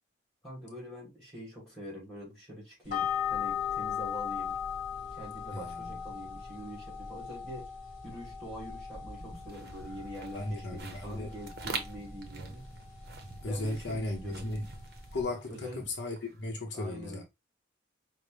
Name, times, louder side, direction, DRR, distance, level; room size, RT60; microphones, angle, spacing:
voice 1, 0.4-4.6 5.1-7.7 8.0-12.7 13.4-14.5 15.5-15.9 16.7-17.2, equal, ahead, 2.3 m, -45 dB
sound 1, 2.9-15.2, left 8 dB, 40° left, 1.1 m, -39 dB
voice 2, 5.5-6.0 10.3-11.3 13.4-14.7 15.1-17.2, left 2 dB, 60° left, 0.7 m, -36 dB
sound 2, 8.9-12.5, equal, 30° right, 1.2 m, -53 dB
sound 3, 9.2-16.5, right 4 dB, 55° right, 0.7 m, -45 dB
5.1 x 2.1 x 3.2 m
head